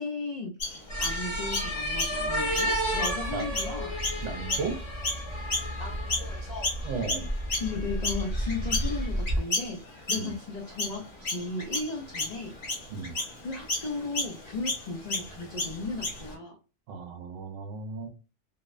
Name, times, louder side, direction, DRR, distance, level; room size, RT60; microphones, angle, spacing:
voice 1, 0.0-3.9 5.8-6.9 7.6-9.8 10.1-12.5 13.4-16.6, left 3 dB, 80° left, 2 dB, 0.3 m, -36 dB
Chirp tweet, 0.6-6.3 6.6-16.3, left 2 dB, 45° left, 1.2 m, -33 dB
sound 1, 0.9-9.4, equal, 25° left, 0.8 m, -31 dB
voice 2, 4.2-4.8 6.8-7.3 10.1-10.3 12.9-13.1 16.9-18.1, right 4 dB, 80° right, 7 dB, 0.9 m, -35 dB
2.7 x 2.0 x 2.3 m, 0.34 s
omnidirectional pair, 1.3 m